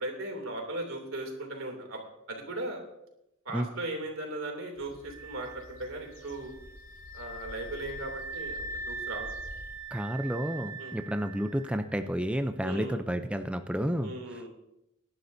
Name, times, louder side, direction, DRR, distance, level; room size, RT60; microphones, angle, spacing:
voice 1, 0.0-2.0 2.3-2.8 3.4-6.5 7.1-9.3 10.8-10.9 12.6-13.0 14.0-14.5, right 2 dB, 70° right, 2 dB, 2.9 m, -37 dB
sound 1, 4.8-9.8, left 1 dB, 70° left, 2.6 m, -49 dB
sound 2, 5.1-11.9, right 2 dB, 20° right, 4.8 m, -42 dB
voice 2, 9.9-14.5, equal, 5° right, 7 dB, 0.5 m, -31 dB
21.5 x 11.5 x 2.7 m, 0.84 s
head